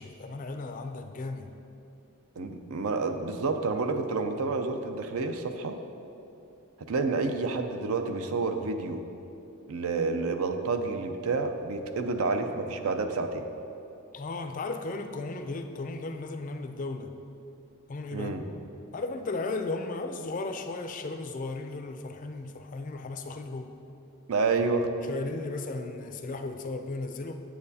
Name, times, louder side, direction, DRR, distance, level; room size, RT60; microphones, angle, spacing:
voice 1, 0.0-1.5 14.1-17.1 17.9-18.4 18.9-23.7 25.1-27.4, left 3 dB, 35° left, 7 dB, 0.4 m, -35 dB
voice 2, 2.4-5.8 6.9-9.0 9.7-13.4 18.1-18.4 24.3-24.9, right 3 dB, 75° right, 7 dB, 0.5 m, -29 dB
8.6 x 8.0 x 2.7 m, 2.8 s
head